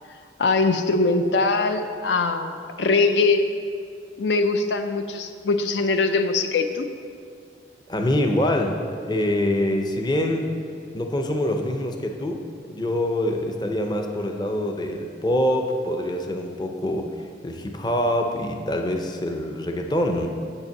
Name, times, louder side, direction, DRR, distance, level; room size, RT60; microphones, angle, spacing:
voice 1, 0.4-3.5 4.2-6.9, left 3 dB, 80° left, 8 dB, 0.5 m, -22 dB
voice 2, 7.9-10.5 10.9-17.1 17.4-20.3, left 1 dB, 25° left, 3 dB, 0.6 m, -25 dB
7.4 x 5.5 x 7.0 m, 2.2 s
head